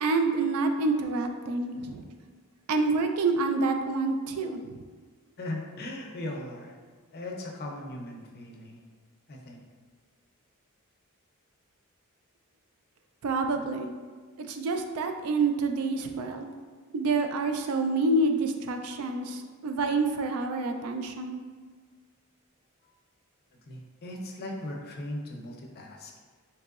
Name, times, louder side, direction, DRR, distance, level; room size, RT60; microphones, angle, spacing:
voice 1, 0.0-2.1 2.7-4.8 13.2-13.9 14.4-16.5 16.9-21.4, right 3 dB, 75° right, 6 dB, 0.3 m, -27 dB
voice 2, 5.4-6.7 7.1-8.8 9.3-9.6 23.7-26.1, left 1 dB, 45° left, 0 dB, 0.5 m, -38 dB
3.6 x 2.9 x 2.3 m, 1.5 s
head